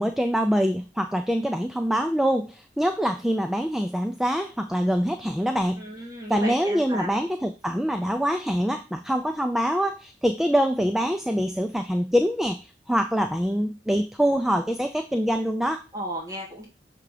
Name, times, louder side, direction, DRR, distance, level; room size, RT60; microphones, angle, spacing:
voice 1, 0.0-5.9 6.3-15.8, equal, ahead, 6 dB, 0.4 m, -24 dB
voice 2, 5.8-7.1 15.9-16.7, right 1 dB, 20° right, -4 dB, 2.0 m, -34 dB
6.7 x 3.6 x 4.9 m, 0.32 s
head